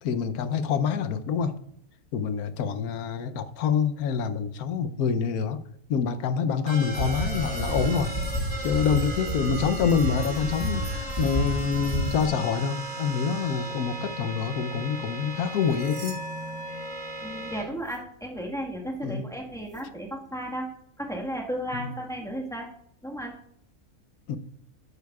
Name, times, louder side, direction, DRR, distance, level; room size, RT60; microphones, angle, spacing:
voice 1, 0.0-1.5 2.1-5.6 5.9-8.1 8.6-16.2 19.0-19.2 21.7-21.9 24.3-24.4, left 6 dB, 90° left, 11 dB, 1.2 m, -26 dB
sound 1, 6.7-17.6, right 1 dB, 30° right, 2.1 m, -36 dB
sound 2, 6.9-12.3, equal, 20° left, 4.1 m, -30 dB
sound 3, 15.4-17.4 17.7-18.0 19.6-19.8, right 2 dB, 60° right, 3.1 m, -49 dB
voice 2, 17.2-20.7 21.0-22.7 23.0-23.3, equal, ahead, -2 dB, 1.4 m, -34 dB
11.5 x 9.2 x 2.4 m, 0.68 s
omnidirectional pair, 1.5 m